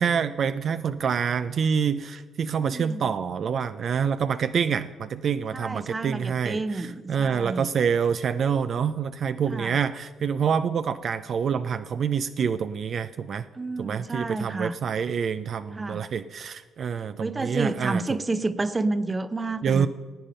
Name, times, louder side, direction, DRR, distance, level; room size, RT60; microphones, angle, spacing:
voice 1, 0.0-13.5 13.8-18.2 19.6-19.9, right 7 dB, 55° right, 12 dB, 0.4 m, -26 dB
voice 2, 2.6-3.1 5.5-7.7 9.5-9.8 13.5-14.8 15.7-16.1 17.2-19.9, right 3 dB, 25° right, 13 dB, 0.7 m, -30 dB
14.5 x 8.8 x 5.5 m, 1.5 s
cardioid pair, 90°, 0 cm